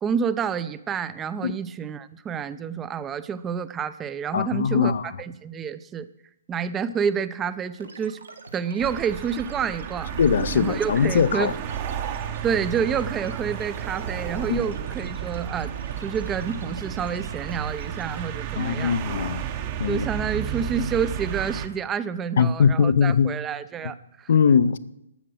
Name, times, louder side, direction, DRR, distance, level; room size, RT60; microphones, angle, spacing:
voice 1, 0.0-6.1 6.5-8.2 8.5-10.1 10.5-11.6 12.4-19.0 19.9-24.3, right 7 dB, 15° right, 0.5 m, -29 dB
voice 2, 4.3-5.0 10.2-11.5 14.5-14.6 18.6-19.4 19.8-20.1 22.4-23.3 24.3-24.8, left 6 dB, 55° left, 0.5 m, -21 dB
sound 1, 7.8-18.2, right 4 dB, 70° right, 1.7 m, -44 dB
sound 2, 8.8-21.7, right 8 dB, 35° right, 0.9 m, -32 dB
13.0 x 7.5 x 6.4 m
figure-of-eight pair, 125°, 0 cm